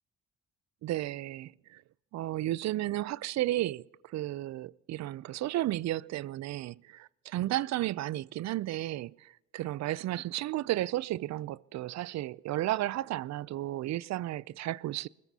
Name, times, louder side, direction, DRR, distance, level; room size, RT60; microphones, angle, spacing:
voice 1, 0.8-1.8 2.1-15.1, right 15 dB, 65° right, 0.4 m, -33 dB
24.5 x 20.5 x 2.8 m
cardioid pair, 90°, 30 cm